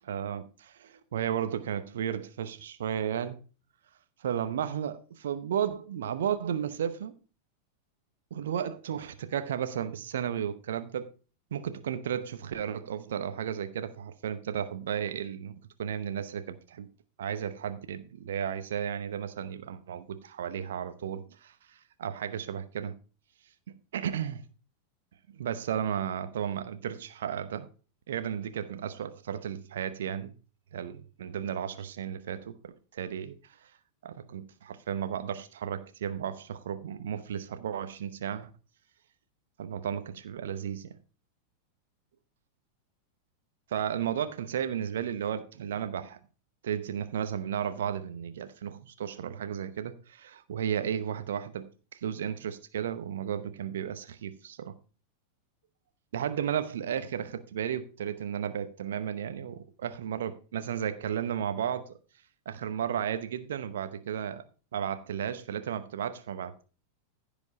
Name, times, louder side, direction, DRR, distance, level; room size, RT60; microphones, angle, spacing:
voice 1, 0.0-3.4 4.2-7.1 8.3-11.1 11.5-16.9 17.2-23.0 23.9-24.4 25.3-27.7 28.1-30.3 30.7-32.5 32.9-33.7 34.0-38.5 39.6-40.9 43.7-46.2 46.6-54.7 56.1-61.9 62.5-64.4 64.7-66.6, right 9 dB, 60° right, 0.9 m, -34 dB
15.5 x 5.2 x 4.0 m
figure-of-eight pair, 90°, 0 cm